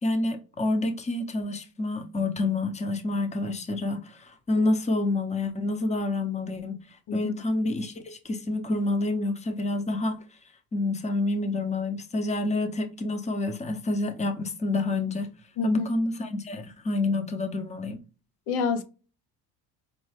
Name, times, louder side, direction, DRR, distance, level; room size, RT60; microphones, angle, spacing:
voice 1, 0.0-6.8 7.1-10.2 10.7-15.3 15.6-18.0, left 2 dB, 15° left, 0.7 m, -28 dB
voice 2, 15.6-15.9 18.5-18.8, left 5 dB, 70° left, 0.8 m, -27 dB
5.3 x 2.2 x 3.3 m
cardioid pair, 95°, 40 cm